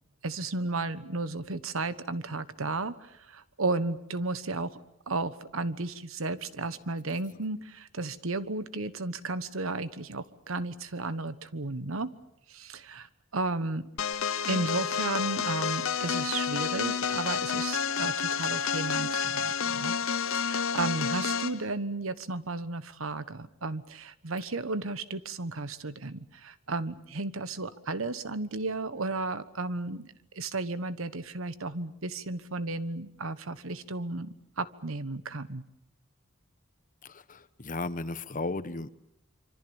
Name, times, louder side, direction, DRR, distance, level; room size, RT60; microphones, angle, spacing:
voice 1, 0.2-4.8 5.1-12.1 12.5-13.9 14.5-35.6, right 3 dB, 75° right, 14 dB, 1.3 m, -34 dB
sound 1, 14.0-21.6, left 6 dB, 75° left, 1.0 m, -30 dB
voice 2, 37.0-38.9, left 3 dB, 40° left, 13 dB, 1.1 m, -35 dB
26.0 x 25.0 x 7.2 m, 0.81 s
head